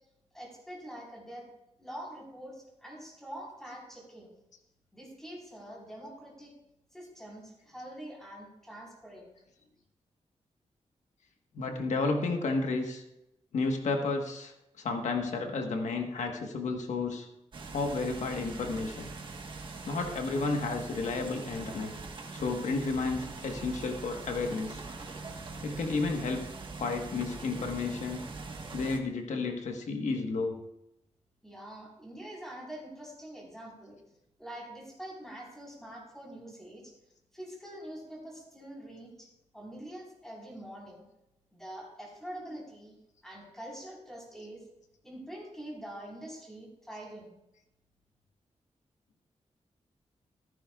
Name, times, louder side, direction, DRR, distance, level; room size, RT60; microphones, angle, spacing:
voice 1, 0.3-1.4 1.8-4.3 4.9-6.5 6.9-9.3 31.4-34.0 34.4-36.9 37.3-39.3 39.5-41.0 41.5-42.9 43.2-44.6 45.0-47.3, right 1 dB, 5° left, -3 dB, 4.2 m, -45 dB
voice 2, 11.5-13.0 13.5-17.3 17.7-19.1 19.9-21.9 22.3-24.8 25.6-28.2 28.7-30.6, left 3 dB, 90° left, 4 dB, 1.3 m, -32 dB
sound 1, 17.5-29.0, right 3 dB, 45° right, 1.3 m, -43 dB
15.0 x 14.0 x 2.4 m, 0.87 s
wide cardioid pair, 170°, 12 cm